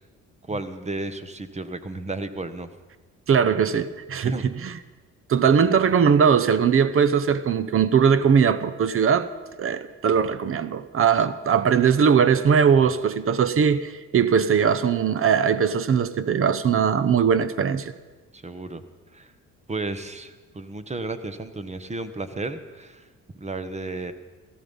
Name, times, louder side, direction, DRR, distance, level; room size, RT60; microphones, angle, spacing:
voice 1, 0.5-2.7 4.2-4.4 11.2-11.3 18.3-18.8 19.1-19.3 19.7-23.1 23.4-24.1, right 2 dB, 20° right, 1.2 m, -33 dB
voice 2, 3.3-4.7 5.3-9.3 9.6-17.9, right 7 dB, 45° right, 0.9 m, -20 dB
17.5 x 14.5 x 5.5 m
cardioid pair, 90°, 30 cm